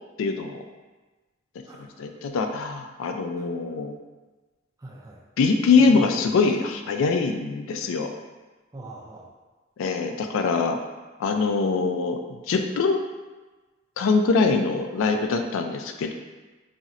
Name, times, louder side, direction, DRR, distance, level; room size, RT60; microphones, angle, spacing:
voice 1, 0.2-0.6 2.0-4.0 5.4-8.1 9.8-10.8 11.2-12.2 12.5-13.0 14.0-16.1, left 4 dB, 85° left, 5 dB, 0.3 m, -23 dB
voice 2, 1.7-2.1 3.4-3.5 4.8-5.2 5.7-6.1 8.7-9.3, right 2 dB, 15° right, -4 dB, 0.3 m, -41 dB
4.1 x 2.0 x 2.4 m, 1.2 s
head